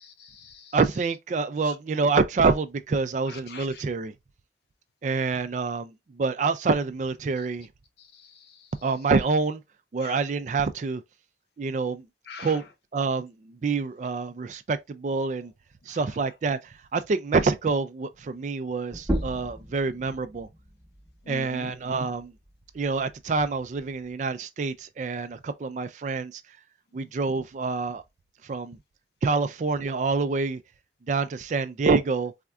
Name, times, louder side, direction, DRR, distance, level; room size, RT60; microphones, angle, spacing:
voice 1, 0.0-0.8 1.6-1.8 3.3-3.8 8.1-8.7 10.0-10.2 12.3-12.6 15.9-16.0 21.2-21.7, left 3 dB, 65° left, 0.6 m, -44 dB
voice 2, 0.7-4.1 5.0-7.7 8.8-9.6 9.9-11.0 11.6-12.0 12.4-12.6 12.9-15.5 15.9-16.6 16.9-20.5 21.3-22.3 22.8-26.4 26.9-28.0 28.5-28.8 29.2-30.6 31.1-32.3, right 4 dB, 40° right, 0.3 m, -26 dB
sound 1, 18.9-24.1, equal, 15° right, 1.0 m, -36 dB
4.2 x 2.5 x 2.3 m
head